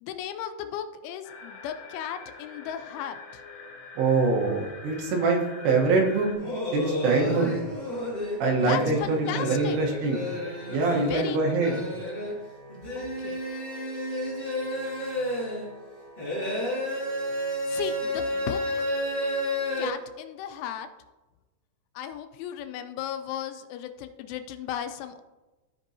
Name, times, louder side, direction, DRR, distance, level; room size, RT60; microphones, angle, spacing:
voice 1, 0.0-3.4 8.7-9.8 11.1-11.4 13.0-13.4 17.7-18.9 19.8-20.9 22.0-25.2, left 9 dB, 90° left, 8 dB, 3.0 m, -35 dB
sound 1, 1.2-6.4, left 4 dB, 70° left, 3.5 m, -45 dB
voice 2, 4.0-6.3 6.7-7.6 8.4-10.2 10.7-11.8, right 3 dB, 70° right, -1 dB, 3.2 m, -24 dB
sound 2, 6.3-19.9, left 1 dB, 45° left, 0.6 m, -31 dB
13.5 x 5.2 x 2.7 m, 1.1 s
omnidirectional pair, 5.4 m